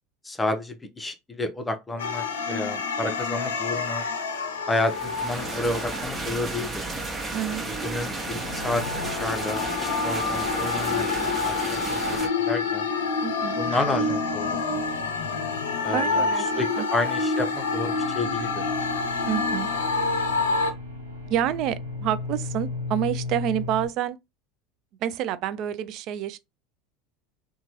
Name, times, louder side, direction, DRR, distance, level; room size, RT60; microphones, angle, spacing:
voice 1, 0.2-4.0 4.7-6.9 7.7-12.2 12.5-12.9 13.6-14.8 15.8-18.7, left 2 dB, 15° left, 0.6 m, -30 dB
sound 1, 2.0-6.4 7.0-20.7, left 4 dB, 80° left, 0.5 m, -28 dB
sound 2, 4.8-12.3, right 2 dB, 20° right, 1.0 m, -33 dB
voice 2, 7.3-7.6 13.2-13.6 15.9-16.4 16.8-16.9 19.3-19.7 21.3-24.2 25.0-26.4, right 11 dB, 50° right, 0.3 m, -28 dB
sound 3, 17.5-23.9, left 3 dB, 90° right, 0.8 m, -36 dB
2.9 x 2.2 x 2.9 m
hypercardioid pair, 75°, 0 cm